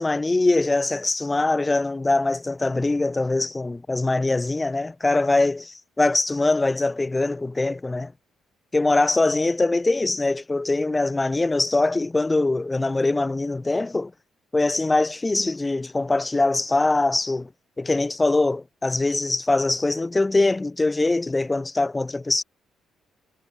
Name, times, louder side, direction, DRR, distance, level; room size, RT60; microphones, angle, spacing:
voice 1, 0.0-8.1 8.7-14.1 14.5-17.5 17.8-22.4, left 2 dB, 20° left, 0.7 m, -22 dB
cardioid pair, 90°, 0 cm